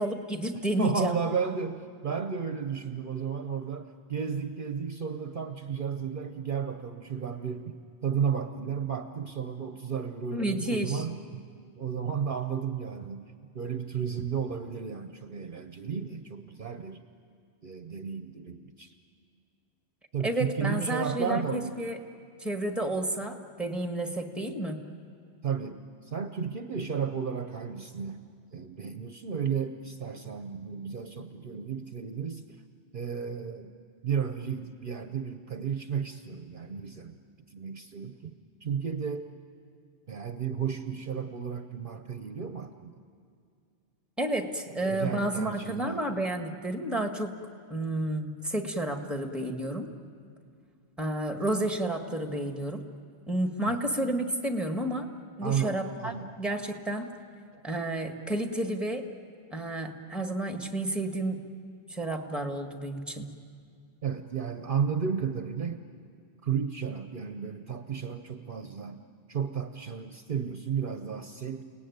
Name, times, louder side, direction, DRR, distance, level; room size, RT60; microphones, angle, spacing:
voice 1, 0.0-1.2 10.3-11.0 20.2-22.0 22.4-24.8 44.2-47.3 47.7-49.9 51.0-52.8 53.3-55.1 55.4-57.1 57.6-59.1 59.5-61.4 61.9-63.3, right 1 dB, ahead, 5 dB, 1.6 m, -31 dB
voice 2, 0.8-7.8 8.0-11.4 11.8-13.3 13.5-17.0 17.6-18.9 20.1-21.8 25.4-28.3 28.5-32.6 32.9-33.7 34.0-37.2 37.5-38.3 38.6-39.3 40.1-43.0 44.7-46.1 53.7-53.8 55.4-56.3 64.0-65.9 66.4-71.6, right 7 dB, 55° right, 8 dB, 1.0 m, -33 dB
30.0 x 18.5 x 9.4 m, 2.2 s
omnidirectional pair, 1.1 m